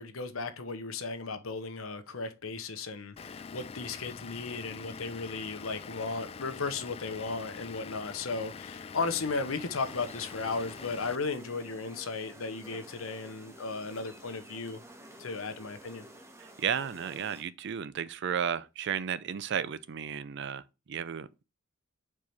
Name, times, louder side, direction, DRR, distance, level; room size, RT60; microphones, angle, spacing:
voice 1, 0.0-14.8 15.2-16.1, left 4 dB, 80° left, 1.0 m, -35 dB
Vehicle / Engine, 3.2-11.2, left 6 dB, 30° left, 0.3 m, -45 dB
sound 1, 9.8-17.4, equal, 15° right, 0.9 m, -51 dB
voice 2, 16.4-20.6 20.9-21.4, right 7 dB, 55° right, 0.5 m, -33 dB
4.9 x 4.5 x 5.3 m
head